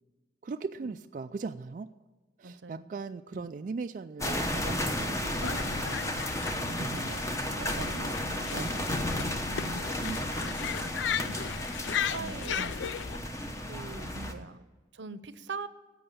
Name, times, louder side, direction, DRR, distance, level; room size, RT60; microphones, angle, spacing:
voice 1, 0.4-1.9 2.4-6.2 6.8-7.1 7.8-7.9 8.5-8.9 9.6-11.3 12.2-12.7 14.1-14.5, right 4 dB, 45° right, 8 dB, 0.3 m, -40 dB
voice 2, 2.4-2.8 3.3-3.5 6.9-8.5 9.5-9.9 11.8-12.6 13.7-14.6 14.9-15.7, right 4 dB, 85° right, 13 dB, 0.7 m, -43 dB
sound 1, 4.2-14.3, left 1 dB, 15° left, 0.9 m, -33 dB
sound 2, 5.4-13.2, left 8 dB, 80° left, 0.4 m, -36 dB
11.0 x 7.8 x 8.7 m, 1.3 s
head